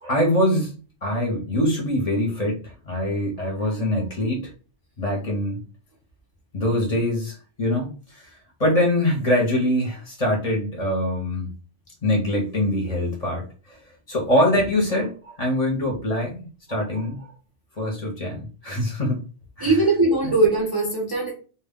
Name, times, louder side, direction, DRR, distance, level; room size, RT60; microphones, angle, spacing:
voice 1, 0.0-4.5 5.0-5.6 6.5-8.3 8.6-11.5 12.0-13.8 14.1-17.3 17.8-19.2 19.6-19.8 20.2-20.3, left 1 dB, 35° left, -1 dB, 0.7 m, -24 dB
voice 2, 19.6-21.3, right 2 dB, 35° right, -3 dB, 0.3 m, -20 dB
2.2 x 2.1 x 3.5 m, 0.37 s
omnidirectional pair, 1.3 m